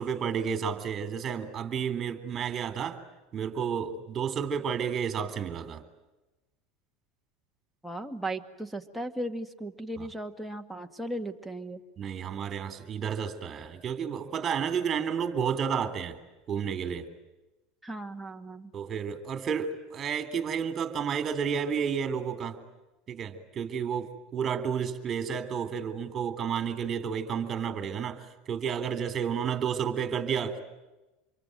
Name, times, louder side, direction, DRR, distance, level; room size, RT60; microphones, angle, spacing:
voice 1, 0.0-3.0 3.3-5.8 12.0-16.2 16.5-17.1 18.7-22.6 23.1-28.2 28.5-30.6, right 7 dB, 35° right, 10 dB, 3.6 m, -31 dB
voice 2, 7.8-11.8 17.8-18.7, right 1 dB, ahead, 3 dB, 2.1 m, -36 dB
27.0 x 23.0 x 9.2 m, 1.1 s
hypercardioid pair, 95°, 0 cm